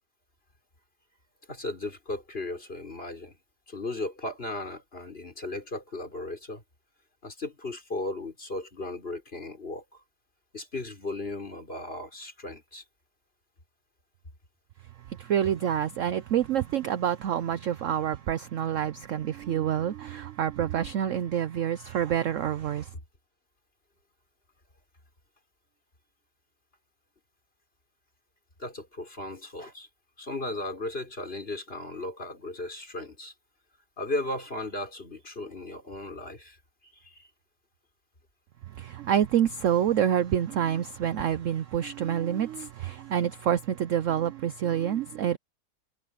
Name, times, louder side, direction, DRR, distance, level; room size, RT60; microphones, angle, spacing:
voice 1, 1.5-3.4 3.7-6.6 7.2-10.0 10.5-12.8 28.6-29.9 30.2-33.3 34.0-36.6 37.0-37.3, left 2 dB, 30° left, 4.4 m, -36 dB
voice 2, 15.1-22.9 38.7-45.4, right 9 dB, 65° right, 0.8 m, -27 dB
omnidirectional pair, 1.9 m